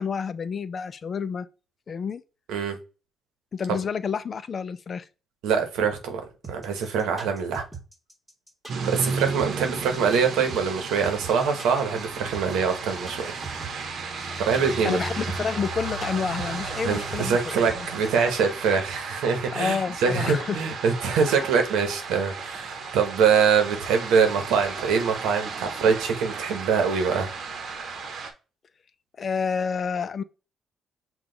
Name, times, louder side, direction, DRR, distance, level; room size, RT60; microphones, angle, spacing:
voice 1, 0.0-1.5 1.9-2.2 3.5-5.1 14.8-17.9 19.5-20.6 29.2-30.2, left 6 dB, 45° left, 0.4 m, -29 dB
voice 2, 5.4-6.2 6.5-7.6 8.8-13.3 14.4-15.0 16.8-27.3, right 6 dB, 90° right, 0.9 m, -24 dB
sound 1, 6.4-18.1, right 4 dB, 15° right, 1.4 m, -41 dB
sound 2, 8.7-28.3, right 4 dB, 65° right, 0.8 m, -34 dB
5.8 x 2.3 x 3.8 m
cardioid pair, 90°, 0 cm